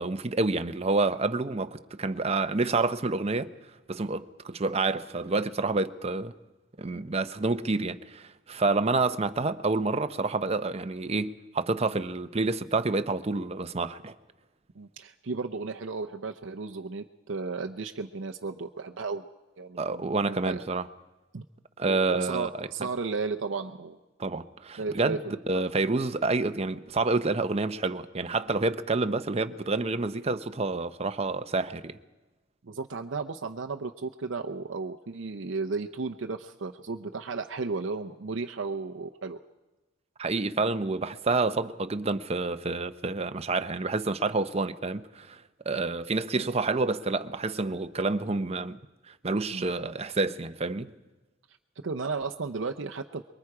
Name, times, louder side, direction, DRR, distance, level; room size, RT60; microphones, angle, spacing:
voice 1, 0.0-3.5 3.9-6.3 6.8-14.1 19.8-20.9 21.8-22.7 24.2-25.2 25.5-32.0 40.2-45.4 45.7-48.8 49.1-50.9, right 3 dB, 30° right, 0.7 m, -28 dB
voice 2, 14.7-19.2 19.6-20.6 21.3-21.4 21.9-24.0 24.8-25.3 32.6-39.4 49.5-49.7 51.8-53.2, right 4 dB, 70° right, 0.7 m, -34 dB
24.5 x 22.5 x 4.9 m
head